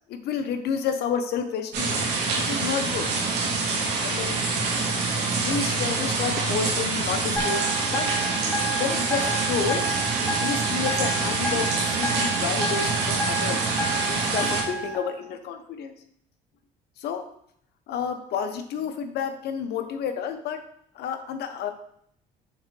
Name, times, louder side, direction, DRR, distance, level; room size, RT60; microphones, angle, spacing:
voice 1, 0.1-2.0 2.3-3.1 4.0-4.4 5.4-8.1 8.7-9.9 10.4-13.6 14.1-15.9 17.0-17.2 17.9-20.6 20.9-21.7, left 7 dB, 75° left, 7 dB, 0.9 m, -30 dB
Rain Loop, 1.7-14.6, right 4 dB, 85° right, 1.9 m, -26 dB
sound 1, 7.4-15.0, right 2 dB, 5° left, 1.4 m, -31 dB
6.4 x 3.9 x 4.5 m, 0.67 s
cardioid pair, 110°, 17 cm